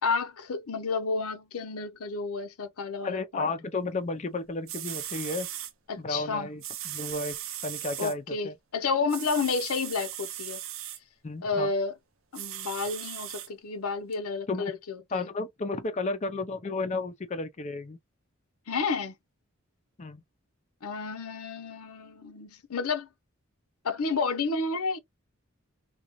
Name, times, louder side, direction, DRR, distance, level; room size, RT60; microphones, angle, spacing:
voice 1, 0.0-3.5 5.9-6.5 8.0-10.6 11.4-11.9 12.3-15.3 18.7-19.2 20.8-23.1 23.8-25.0, left 4 dB, 90° left, 0.7 m, -31 dB
voice 2, 3.0-5.5 6.0-7.4 7.6-8.6 11.2-11.7 14.5-14.7 15.1-18.0 20.0-20.2, left 3 dB, 30° left, 0.4 m, -33 dB
sound 1, 4.4-4.5 4.7-5.7 6.6-8.1 9.1-11.0 12.3-13.5 14.1-14.2, right 12 dB, 65° right, 0.6 m, -38 dB
3.7 x 2.3 x 3.0 m
head